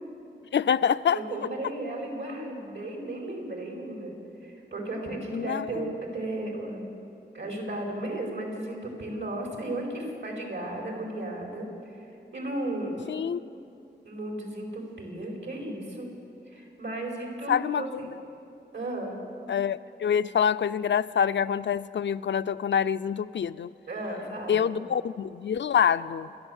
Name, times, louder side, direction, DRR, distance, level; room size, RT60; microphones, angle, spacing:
voice 1, 0.5-1.2 5.3-5.6 13.1-13.4 17.5-18.0 19.5-23.7 24.5-26.3, left 8 dB, 80° left, 13 dB, 0.5 m, -26 dB
voice 2, 1.1-4.1 4.4-6.8 7.3-13.0 14.0-16.1 16.5-18.1 18.7-19.2 23.9-24.7, right 1 dB, 80° right, 0 dB, 5.1 m, -35 dB
28.5 x 11.5 x 8.0 m, 2.7 s
wide cardioid pair, 75°, 19 cm